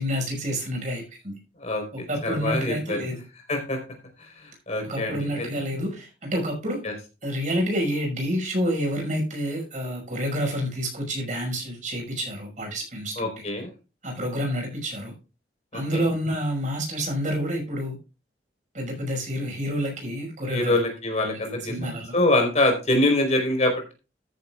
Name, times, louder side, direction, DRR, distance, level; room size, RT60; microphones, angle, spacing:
voice 1, 0.0-1.4 2.1-3.2 4.8-6.8 7.2-13.3 14.0-15.1 15.7-18.0 18.7-20.8 21.2-21.4 21.7-22.1, equal, 45° right, 2 dB, 5.8 m, -28 dB
voice 2, 1.6-3.0 3.5-3.8 4.2-5.5 6.8-6.9 13.2-13.7 15.7-16.0 20.5-21.7 22.1-23.9, left 1 dB, 40° left, 2 dB, 4.3 m, -25 dB
14.0 x 10.5 x 2.4 m, 0.31 s
head